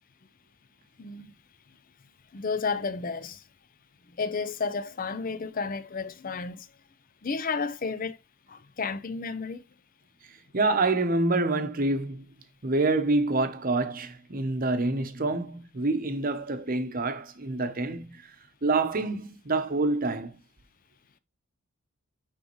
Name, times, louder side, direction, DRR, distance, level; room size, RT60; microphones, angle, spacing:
voice 1, 1.0-1.3 2.3-3.4 4.2-6.7 7.2-8.2 8.5-9.6, left 4 dB, 40° left, 0.5 m, -32 dB
voice 2, 10.5-12.2 12.6-18.2 18.6-20.4, right 2 dB, 40° right, 0.9 m, -27 dB
9.3 x 3.6 x 3.0 m
head